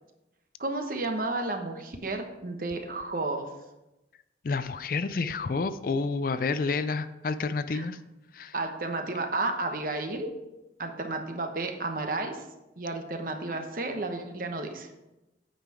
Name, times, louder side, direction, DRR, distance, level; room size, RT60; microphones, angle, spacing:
voice 1, 0.6-3.5 7.7-7.8 8.5-10.3 10.8-12.4 12.8-14.9, right 2 dB, 50° right, 5 dB, 1.0 m, -32 dB
voice 2, 4.4-8.0 8.3-8.5, left 4 dB, 50° left, 12 dB, 0.4 m, -29 dB
8.8 x 5.7 x 4.8 m, 0.98 s
head